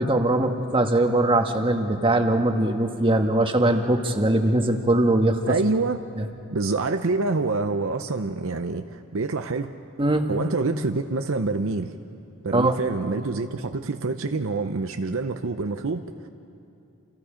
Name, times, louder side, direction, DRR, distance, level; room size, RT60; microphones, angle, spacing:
voice 1, 0.0-5.4 10.0-10.3 12.5-12.7, right 1 dB, 25° right, 4 dB, 1.5 m, -21 dB
voice 2, 5.5-6.0 6.5-9.7 10.3-11.9 12.4-16.3, right 3 dB, 60° right, 7 dB, 0.7 m, -26 dB
29.0 x 28.0 x 5.1 m, 2.6 s
head